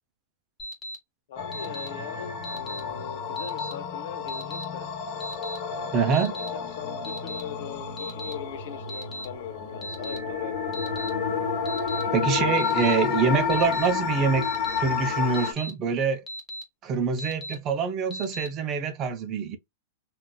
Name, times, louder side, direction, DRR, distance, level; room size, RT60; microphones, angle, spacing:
Alarm, 0.6-1.0 1.5-1.9 2.4-2.8 3.4-3.7 4.3-4.6 5.2-5.6 6.1-6.5 7.0-7.4 8.0-8.3 8.9-9.2 9.8-10.2 10.7-11.1 11.7-12.0 12.6-12.9 13.5-13.9 14.4-14.8 15.3-15.7 16.3-16.6 17.2-17.5 18.1-18.5, equal, 15° left, 1.0 m, -37 dB
voice 1, 1.3-4.9 5.7-10.9, left 8 dB, 65° left, 1.0 m, -40 dB
sound 1, 1.4-15.5, left 6 dB, 40° left, 1.0 m, -30 dB
voice 2, 5.9-6.3 12.1-14.5 14.8-16.2 16.8-19.6, right 5 dB, 30° right, 0.5 m, -25 dB
3.7 x 2.4 x 2.3 m
supercardioid pair, 155°, 0 cm